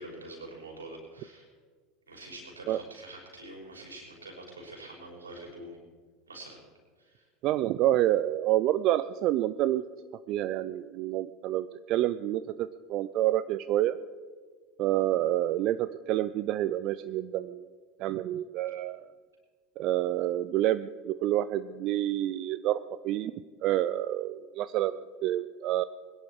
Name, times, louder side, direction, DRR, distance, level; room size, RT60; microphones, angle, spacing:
voice 1, 0.0-1.5 2.1-5.8 6.3-6.6 7.0-7.3, right 1 dB, 85° right, -1 dB, 5.3 m, -45 dB
voice 2, 7.4-9.8 10.3-14.0 14.8-17.7 18.0-19.1 19.8-22.8 23.0-23.3 23.6-25.8, right 13 dB, 50° right, 13 dB, 0.5 m, -28 dB
22.0 x 10.5 x 4.8 m, 1.5 s
hypercardioid pair, 80°, 0 cm